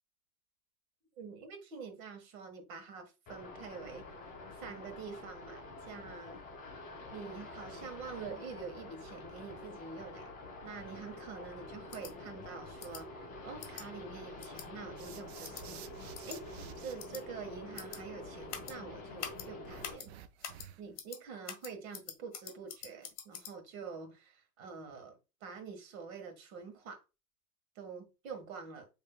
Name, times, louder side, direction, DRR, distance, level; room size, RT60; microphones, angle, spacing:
voice 1, 1.2-4.0 4.5-6.4 7.1-10.3 10.6-15.8 16.3-16.4 16.8-20.1 20.8-27.0 27.7-28.9, right 5 dB, 60° right, 1.6 m, -46 dB
sound 1, 3.3-19.9, left 2 dB, 15° left, 2.2 m, -47 dB
sound 2, 11.9-12.1 12.8-13.0 13.6-13.8 14.4-14.7 15.4-15.6 16.1-16.4 17.0-17.2 17.8-18.0 18.5-18.7 19.2-19.5 19.8-20.1 20.4-20.7 21.0-21.2 21.5-23.5, left 9 dB, 45° left, 1.2 m, -44 dB
sound 3, 15.0-17.0 19.6-21.0, right 9 dB, 45° right, 0.5 m, -51 dB
6.7 x 3.2 x 2.2 m
supercardioid pair, 160°, 45 cm